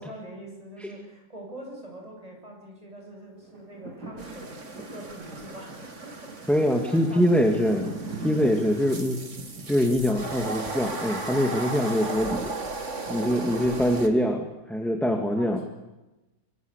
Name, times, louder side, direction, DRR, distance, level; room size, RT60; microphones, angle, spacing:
voice 1, 0.0-4.6 4.9-8.6 12.9-13.6 15.1-15.7, right 1 dB, 20° right, 1 dB, 8.2 m, -44 dB
sound 1, 3.4-11.7 12.2-12.3, right 2 dB, 80° right, 4.8 m, -42 dB
sound 2, 4.2-14.1, right 3 dB, 45° right, 2.7 m, -37 dB
voice 2, 6.5-7.9 8.2-9.2 9.7-12.5 13.1-15.6, equal, ahead, 4 dB, 2.3 m, -24 dB
24.5 x 23.5 x 8.4 m, 1.0 s
omnidirectional pair, 1.7 m